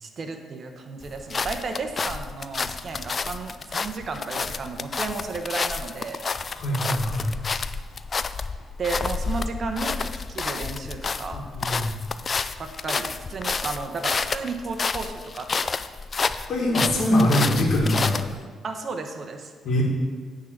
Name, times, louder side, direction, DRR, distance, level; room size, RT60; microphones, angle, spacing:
voice 1, 0.0-6.2 8.8-11.4 12.6-15.8 18.6-19.5, right 4 dB, 45° right, 5 dB, 1.0 m, -33 dB
sound 1, 1.0-18.4, left 5 dB, 40° left, 0.3 m, -30 dB
voice 2, 6.5-7.3 11.5-11.9 16.5-18.2 19.6-19.8, left 1 dB, 60° left, -3 dB, 1.9 m, -22 dB
9.1 x 3.8 x 6.6 m, 1.5 s
cardioid pair, 90°, 0 cm